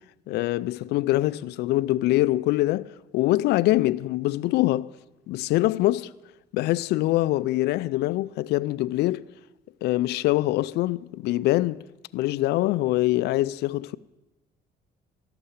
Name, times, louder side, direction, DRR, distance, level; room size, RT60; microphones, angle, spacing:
voice 1, 0.3-4.9 5.3-6.1 6.5-9.3 9.8-11.8 12.1-14.0, left 17 dB, 75° left, 0.4 m, -24 dB
13.5 x 6.8 x 10.0 m
cardioid pair, 110°, 17 cm